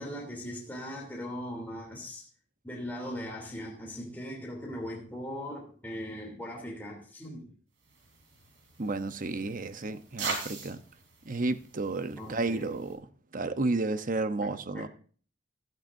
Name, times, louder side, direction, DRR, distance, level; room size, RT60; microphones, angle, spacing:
voice 1, 0.0-2.3 2.6-7.5 12.2-12.7 14.4-14.9, equal, 10° left, 2.9 m, -39 dB
Paper landing, 7.8-12.9, right 3 dB, 75° right, 4.0 m, -42 dB
voice 2, 8.8-10.8 11.3-13.0 13.3-14.9, right 2 dB, 45° right, 0.9 m, -32 dB
16.0 x 12.0 x 2.6 m
head